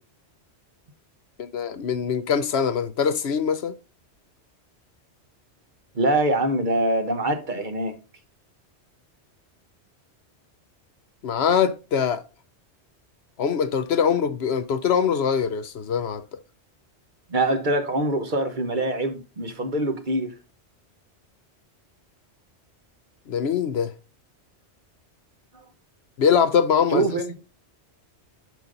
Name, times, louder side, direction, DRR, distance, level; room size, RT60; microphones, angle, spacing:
voice 1, 1.4-3.7 11.2-12.2 13.4-16.4 23.3-23.9 26.2-27.0, left 7 dB, 70° left, 0.9 m, -23 dB
voice 2, 5.9-8.0 17.3-20.3 25.5-25.6 26.9-27.3, right 2 dB, 45° right, 1.2 m, -24 dB
11.0 x 5.3 x 3.9 m
omnidirectional pair, 1.2 m